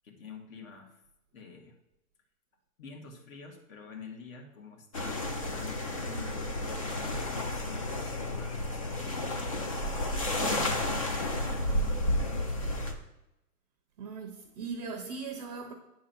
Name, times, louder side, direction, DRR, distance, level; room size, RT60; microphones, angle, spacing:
voice 1, 0.0-1.0 1.3-1.8 2.8-12.9, left 5 dB, 60° left, 1.9 m, -48 dB
sound 1, 4.9-12.9, left 1 dB, 25° left, 0.4 m, -32 dB
voice 2, 14.0-15.7, right 5 dB, 25° right, 0.6 m, -39 dB
9.3 x 3.8 x 5.7 m
hypercardioid pair, 145°, 47 cm